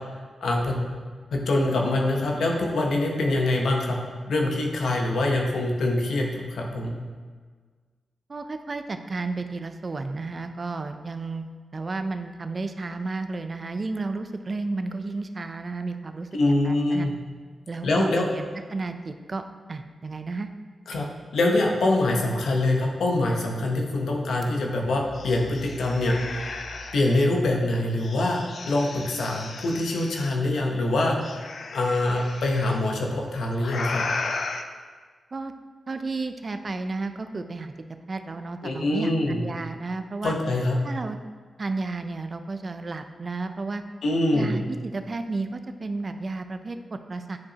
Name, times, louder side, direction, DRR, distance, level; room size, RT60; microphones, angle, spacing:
voice 1, 0.4-0.8 1.3-4.0 4.3-7.0 16.3-17.1 17.8-18.3 20.9-26.6 26.9-34.0 38.6-39.4 40.2-40.8 44.0-44.5, left 2 dB, 85° left, 0 dB, 0.9 m, -24 dB
voice 2, 8.3-11.5 11.7-17.1 17.7-20.5 35.3-35.5 35.9-37.7 38.1-40.4 40.8-41.2 41.6-43.8 44.3-47.4, right 3 dB, 45° right, 8 dB, 0.5 m, -32 dB
sound 1, 24.4-24.5 24.9-27.2 28.0-30.4 31.2-32.8 33.6-34.6, left 3 dB, 65° left, 0.5 m, -35 dB
9.4 x 4.8 x 2.9 m, 1.5 s
cardioid pair, 65°, 0 cm